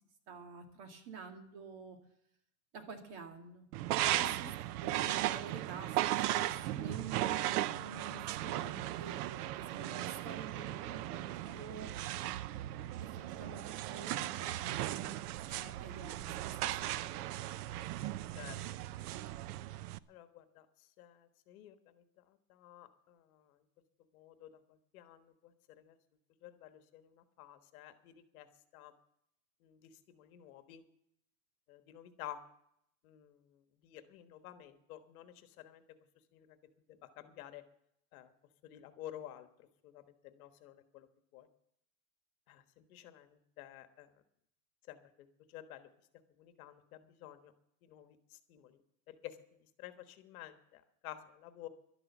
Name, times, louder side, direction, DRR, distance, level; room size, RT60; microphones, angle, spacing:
voice 1, 0.3-2.0 2.7-3.7 4.0-6.0 6.3-11.9 13.0-15.1 15.5-17.3, right 4 dB, 45° right, 5 dB, 2.2 m, -48 dB
sound 1, 3.7-20.0, right 14 dB, 70° right, 0.7 m, -37 dB
voice 2, 20.1-23.6 24.1-26.0 26.4-28.5 28.7-28.9 29.6-30.8 31.7-32.4 33.0-35.8 36.3-36.6 36.9-37.6 38.1-38.3 38.6-39.5 39.8-41.1 41.3-41.5 42.5-44.1 44.9-45.9 46.4-47.5 47.8-48.8 49.1-49.4 49.8-51.7, left 12 dB, 60° left, 9 dB, 1.4 m, -52 dB
12.0 x 11.0 x 7.1 m, 0.74 s
supercardioid pair, 175°, 47 cm